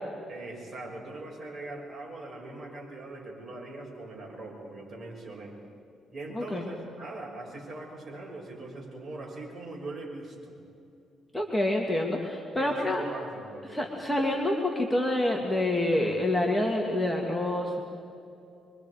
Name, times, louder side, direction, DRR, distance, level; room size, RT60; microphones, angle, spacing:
voice 1, 0.3-5.6 6.1-10.6 12.6-14.0, right 2 dB, 35° right, -2 dB, 6.7 m, -41 dB
voice 2, 11.3-13.0 13.7-17.8, left 1 dB, 10° left, 0 dB, 2.2 m, -27 dB
25.5 x 23.5 x 5.0 m, 2.6 s
cardioid pair, 90°, 0 cm